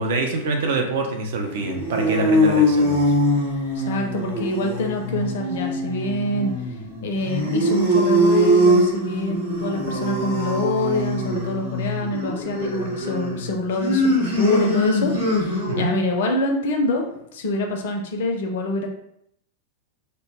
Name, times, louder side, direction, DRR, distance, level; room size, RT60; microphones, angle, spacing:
voice 1, 0.0-3.1 15.7-15.9, right 3 dB, 55° right, 4 dB, 0.4 m, -25 dB
sound 1, 1.5-16.0, equal, 80° right, 0.8 m, -22 dB
voice 2, 3.7-6.5 7.0-18.9, left 2 dB, 55° left, 3 dB, 0.4 m, -25 dB
2.1 x 2.1 x 3.1 m, 0.74 s
figure-of-eight pair, 90°, 0 cm